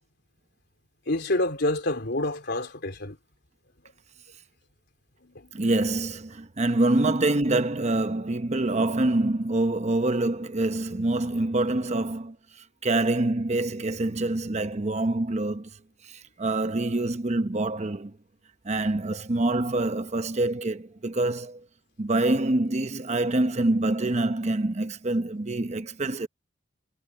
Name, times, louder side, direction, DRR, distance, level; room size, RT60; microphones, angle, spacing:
voice 1, 1.1-3.2 5.2-5.5, left 1 dB, 60° left, 3.6 m, -28 dB
voice 2, 5.5-12.4 12.8-15.7 16.0-18.1 18.6-21.6 22.0-26.3, right 2 dB, 35° right, 0.8 m, -26 dB
head